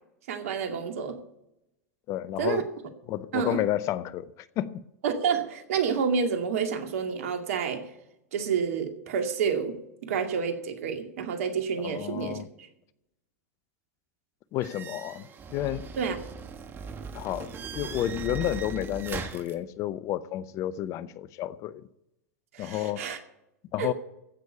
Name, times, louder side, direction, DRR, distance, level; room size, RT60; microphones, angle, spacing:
voice 1, 0.3-1.2 2.4-2.6 3.3-3.6 5.0-7.8 8.3-9.8 10.1-12.4 16.0-16.2 22.5-23.2 23.8-23.9, right 6 dB, 70° right, 2.2 m, -29 dB
voice 2, 2.1-2.7 3.1-4.8 11.8-12.5 14.5-15.9 17.1-21.9 22.6-23.0 23.7-23.9, left 13 dB, 40° left, 0.7 m, -31 dB
sound 1, 14.6-19.5, right 5 dB, 25° right, 1.5 m, -39 dB
15.5 x 6.4 x 8.4 m
hypercardioid pair, 100°, 8 cm